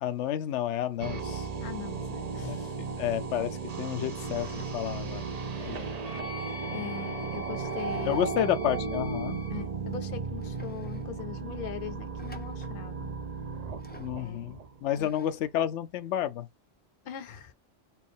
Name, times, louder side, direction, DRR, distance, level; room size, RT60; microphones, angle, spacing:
voice 1, 0.0-1.5 2.4-2.6 3.0-5.3 5.6-5.9 8.0-9.4 14.0-16.5, left 11 dB, 85° left, 0.9 m, -31 dB
sound 1, 1.0-15.1, right 5 dB, 45° right, 0.6 m, -35 dB
voice 2, 1.6-2.8 5.5-5.9 6.7-8.4 9.5-13.1 14.1-14.5 15.0-15.1 17.0-17.5, left 10 dB, 55° left, 0.8 m, -41 dB
sound 2, 4.1-4.7 5.1-6.5 7.5-8.3 8.6-8.7 9.4-9.5 9.9-10.0 10.4-11.1 12.2-12.8 13.8-14.2 14.9-15.5, left 1 dB, 15° left, 0.4 m, -52 dB
Wind instrument woodwind instrument, 6.0-9.7, left 3 dB, 90° right, 1.8 m, -44 dB
4.3 x 2.5 x 3.5 m
omnidirectional pair, 1.2 m